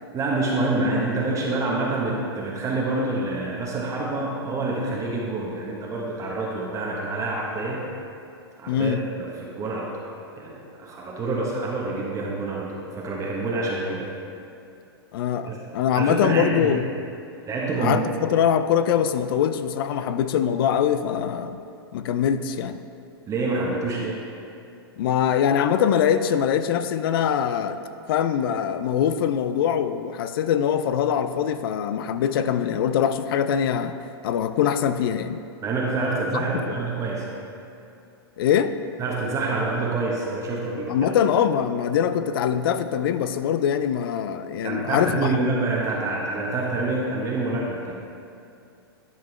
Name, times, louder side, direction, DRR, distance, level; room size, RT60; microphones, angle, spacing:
voice 1, 0.1-7.8 8.6-10.1 10.4-14.1 15.5-15.6 15.9-16.8 17.5-18.0 23.3-24.3 35.6-37.4 39.0-41.1 44.6-48.0, right 2 dB, 25° right, -2 dB, 1.0 m, -27 dB
voice 2, 8.7-9.0 15.1-16.8 17.8-21.6 21.9-22.8 25.0-27.8 28.1-34.0 34.2-35.4 36.3-36.8 38.4-38.8 40.9-45.4, left 8 dB, 60° left, 11 dB, 0.4 m, -23 dB
10.5 x 5.3 x 3.2 m, 2.6 s
hypercardioid pair, 115°, 13 cm